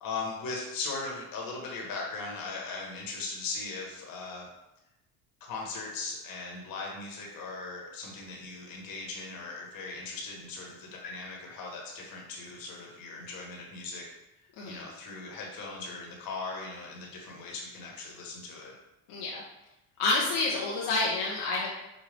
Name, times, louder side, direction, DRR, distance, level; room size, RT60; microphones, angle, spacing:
voice 1, 0.0-4.5 5.4-14.0 14.6-18.7, left 3 dB, 65° left, -1 dB, 1.3 m, -39 dB
voice 2, 19.1-19.4 20.0-21.7, left 3 dB, 85° left, -4 dB, 0.9 m, -28 dB
5.3 x 2.3 x 3.3 m, 0.94 s
cardioid pair, 105°, 38 cm